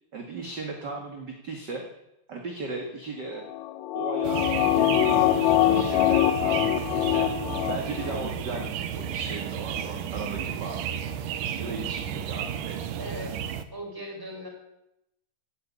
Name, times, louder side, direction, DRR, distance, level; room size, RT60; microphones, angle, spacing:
voice 1, 0.1-1.8 2.3-3.4 3.9-4.5 4.7-7.3 7.7-10.8 11.6-12.9, right 3 dB, 35° right, 2 dB, 2.1 m, -36 dB
sound 1, 3.5-8.3 8.6-8.7, left 14 dB, 70° left, 1.9 m, -24 dB
sound 2, 4.2-13.6, right 9 dB, 80° right, 2.6 m, -32 dB
voice 2, 13.0-14.5, equal, 5° right, 1 dB, 4.2 m, -39 dB
17.0 x 9.7 x 8.6 m, 0.87 s
omnidirectional pair, 3.8 m